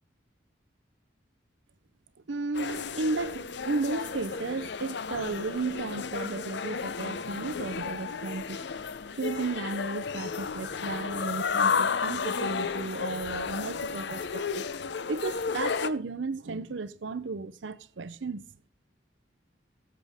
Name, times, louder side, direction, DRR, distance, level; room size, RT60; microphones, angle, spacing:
voice 1, 2.3-8.6 9.1-14.6 15.1-18.4, right 3 dB, 75° right, 0.7 m, -34 dB
sound 1, 2.5-15.9, left 5 dB, 65° left, 0.6 m, -32 dB
15.0 x 7.6 x 3.6 m
head